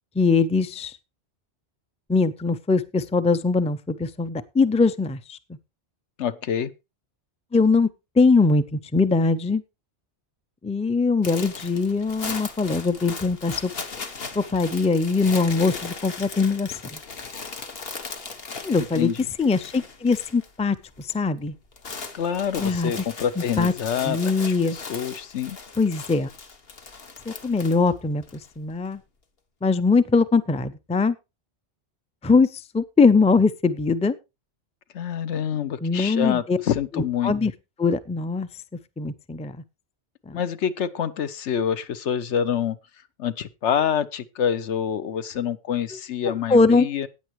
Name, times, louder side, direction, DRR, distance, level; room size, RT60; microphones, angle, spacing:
voice 1, 0.2-0.9 2.1-5.4 7.5-7.9 8.2-9.6 10.6-13.7 14.3-16.8 18.6-19.1 19.4-21.5 22.6-22.9 23.6-23.7 24.0-24.8 25.8-26.3 27.3-28.2 28.6-29.0 29.6-31.2 32.2-34.1 35.8-36.6 36.9-37.5 37.8-38.5 39.0-39.5 40.3-40.4 46.2-46.9, left 4 dB, 10° left, 0.4 m, -21 dB
voice 2, 6.2-6.7 18.9-19.3 22.1-25.6 34.9-37.3 40.3-42.8 43.2-47.1, left 8 dB, 85° left, 1.1 m, -26 dB
sound 1, 11.2-20.5 20.8-21.2 21.5-28.5, left 4 dB, 60° left, 1.4 m, -38 dB
15.5 x 9.1 x 3.1 m
omnidirectional pair, 1.2 m